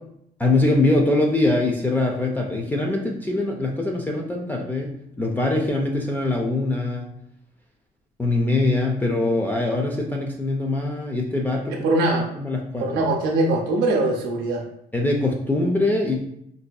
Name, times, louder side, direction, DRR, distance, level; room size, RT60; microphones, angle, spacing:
voice 1, 0.4-7.1 8.2-12.0 12.4-13.0 14.9-16.2, left 2 dB, 10° left, -1 dB, 0.4 m, -23 dB
voice 2, 11.8-12.3 12.8-14.6, right 2 dB, 85° right, 1 dB, 0.6 m, -21 dB
4.3 x 2.6 x 2.2 m, 0.74 s
cardioid pair, 110°, 17 cm